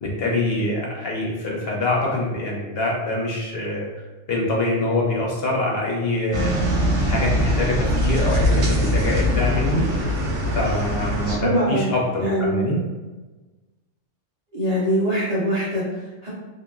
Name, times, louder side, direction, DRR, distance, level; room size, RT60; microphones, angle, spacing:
voice 1, 0.0-3.9 4.3-6.5 7.1-9.9 10.5-12.8, left 2 dB, 65° left, -2 dB, 0.7 m, -24 dB
sound 1, 6.3-11.4, equal, 70° right, 1.0 m, -22 dB
voice 2, 11.4-12.7 14.5-16.3, equal, 45° right, -8 dB, 0.5 m, -23 dB
2.9 x 2.4 x 2.2 m, 1.2 s
omnidirectional pair, 1.2 m